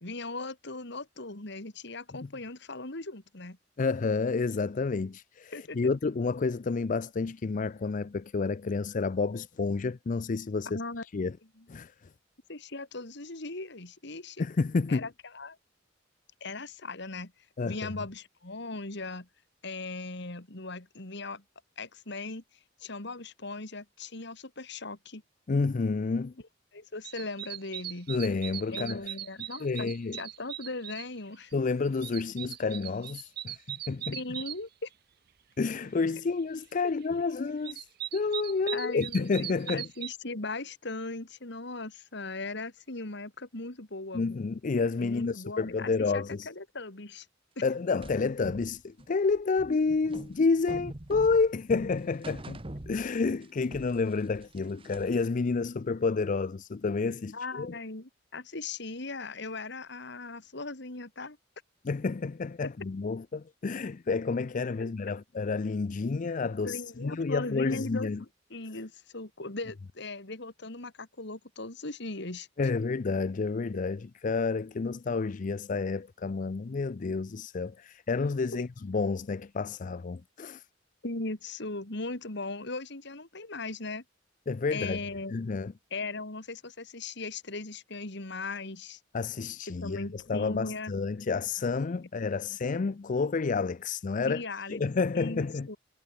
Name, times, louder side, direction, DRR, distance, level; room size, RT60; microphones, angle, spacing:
voice 1, 0.0-3.6 5.5-5.8 10.6-11.0 11.6-11.7 12.5-14.4 14.9-15.6 16.4-17.3 17.7-19.3 19.6-21.4 21.8-22.4 22.8-25.2 26.7-28.1 28.7-29.9 30.2-31.5 34.1-34.9 38.7-39.3 39.7-44.2 45.0-47.3 57.3-61.4 62.6-62.7 64.8-64.9 66.6-68.1 68.5-72.5 78.5-78.7 81.0-84.0 84.7-85.3 85.9-89.0 89.7-90.9 94.3-94.8 95.1-95.8, left 3 dB, 65° left, 2.8 m, -38 dB
voice 2, 3.8-10.7 11.0-11.4 11.7-11.9 14.4-15.1 17.6-17.9 25.5-26.3 28.1-29.1 29.6-30.2 31.5-34.2 35.6-37.9 38.1-39.9 44.1-46.5 47.6-52.6 52.9-57.8 61.8-68.2 72.6-80.6 84.5-85.0 85.3-85.7 89.1-94.4 94.7-95.7, left 4 dB, 45° left, 0.4 m, -30 dB
sound 1, 27.0-31.1 31.5-34.6 37.0-37.1 37.5-40.1, right 12 dB, 55° right, 0.5 m, -39 dB
sound 2, 48.0-53.5 53.7-55.3, right 1 dB, 30° right, 1.2 m, -43 dB
head